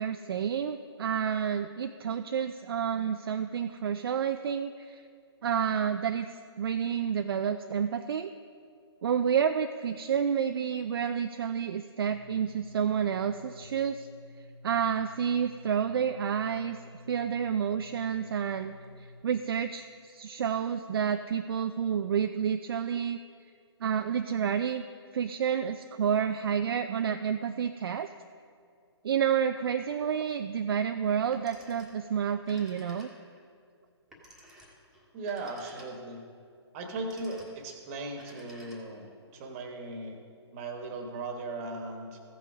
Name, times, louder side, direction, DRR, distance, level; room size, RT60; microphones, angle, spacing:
voice 1, 0.0-5.0 5.4-8.3 9.0-14.1 14.6-16.8 17.1-23.2 23.8-24.8 25.1-28.1 29.0-33.1, right 8 dB, 55° right, 8 dB, 0.4 m, -29 dB
sound 1, 12.1-19.2, left 2 dB, 75° left, 1.9 m, -51 dB
Telephone, 31.3-32.1 32.4-33.4 34.1-36.2 36.8-37.7 38.1-39.1, equal, 5° right, 1.5 m, -54 dB
voice 2, 35.1-36.2 36.7-40.2 40.5-42.2, right 2 dB, 30° right, 4 dB, 1.4 m, -38 dB
15.0 x 6.1 x 4.9 m, 2.3 s
figure-of-eight pair, 135°, 14 cm